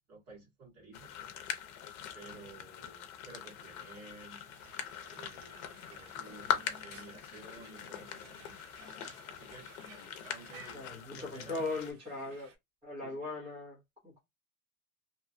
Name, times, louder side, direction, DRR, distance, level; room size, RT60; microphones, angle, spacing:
voice 1, 0.1-1.1 2.1-4.4 5.1-8.6 9.3-9.7 10.2-11.6 12.2-12.3 13.0-13.2, right 3 dB, 35° right, 1.7 m, -53 dB
sound 1, 0.9-11.9, left 10 dB, 70° left, 0.8 m, -42 dB
Frying (food), 3.4-12.6, right 6 dB, 55° right, 1.0 m, -58 dB
sound 2, 5.5-9.4 9.8-10.5 11.8-11.9, left 3 dB, 30° left, 0.8 m, -59 dB
voice 2, 10.7-12.5 12.8-14.2, left 3 dB, 15° right, 0.8 m, -39 dB
3.0 x 2.2 x 2.6 m
supercardioid pair, 180°, 44 cm